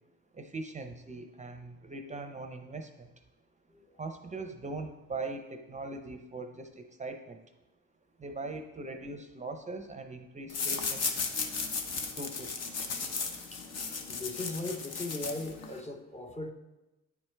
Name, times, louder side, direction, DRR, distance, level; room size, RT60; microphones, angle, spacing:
voice 1, 0.3-3.1 4.0-7.4 8.2-11.1 12.2-12.5, right 3 dB, 25° right, 0.5 m, -41 dB
sound 1, 10.5-15.8, left 5 dB, 60° left, 0.9 m, -35 dB
voice 2, 14.1-16.5, left 2 dB, 20° left, 0.6 m, -38 dB
9.4 x 4.5 x 3.3 m
cardioid pair, 90°, 30 cm